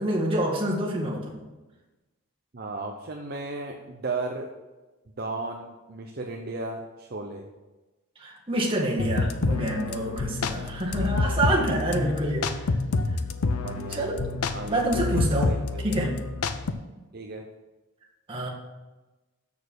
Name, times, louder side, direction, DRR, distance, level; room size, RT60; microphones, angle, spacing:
voice 1, 0.0-1.4 8.2-12.7 13.9-14.2 14.7-15.6 15.8-16.1 18.3-18.5, right 1 dB, 25° right, -3 dB, 1.7 m, -27 dB
voice 2, 2.5-4.5 5.2-7.5 13.6-14.1 14.5-14.8 15.1-16.0 17.1-17.5, right 3 dB, 45° right, 2 dB, 0.6 m, -35 dB
sound 1, 9.0-16.7, left 3 dB, 80° left, 0.6 m, -28 dB
7.1 x 6.5 x 6.4 m, 1.1 s
head